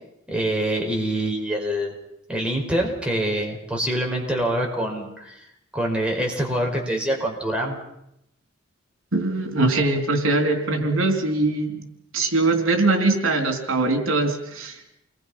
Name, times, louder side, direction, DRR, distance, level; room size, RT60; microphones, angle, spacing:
voice 1, 0.3-1.9 2.3-5.3 5.7-7.8, right 1 dB, 5° right, -1 dB, 5.3 m, -25 dB
voice 2, 9.1-11.9 12.1-14.8, right 2 dB, 85° right, 4 dB, 3.8 m, -22 dB
29.5 x 22.0 x 5.8 m, 0.81 s
head